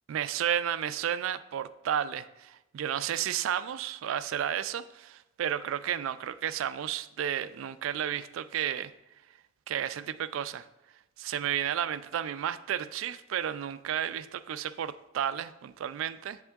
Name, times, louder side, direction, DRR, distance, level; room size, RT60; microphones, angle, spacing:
voice 1, 0.1-8.9 9.7-10.7 11.2-16.4, right 9 dB, 85° right, 14 dB, 0.3 m, -32 dB
8.0 x 3.6 x 3.4 m, 0.93 s
head